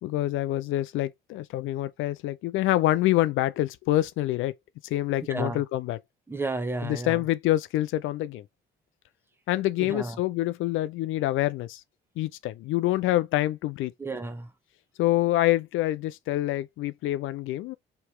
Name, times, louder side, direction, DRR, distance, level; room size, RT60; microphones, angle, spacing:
voice 1, 0.0-4.5 4.9-6.0 6.8-8.4 9.5-11.8 12.2-13.9 15.0-17.8, left 15 dB, 85° left, 0.4 m, -26 dB
voice 2, 5.3-5.6 6.3-7.2 9.8-10.2 14.0-14.5, right 2 dB, 10° right, 1.0 m, -32 dB
3.3 x 2.9 x 4.5 m
cardioid pair, 90°, 20 cm